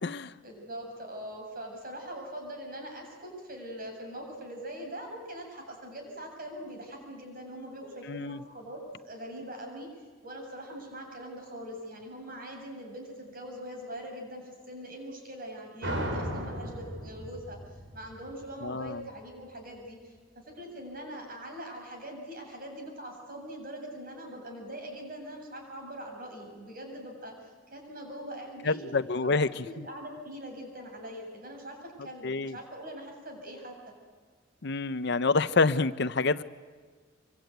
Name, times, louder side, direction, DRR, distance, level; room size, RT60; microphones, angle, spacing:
voice 1, 0.4-9.9 10.2-28.8 29.2-33.9, equal, 45° right, 2 dB, 7.7 m, -42 dB
voice 2, 8.1-8.4 18.6-19.0 28.6-29.5 32.2-32.6 34.6-36.4, left 3 dB, 60° left, 13 dB, 0.7 m, -27 dB
sound 1, 15.8-19.1, equal, 70° right, 5.1 m, -36 dB
25.5 x 23.5 x 9.3 m, 1.5 s
head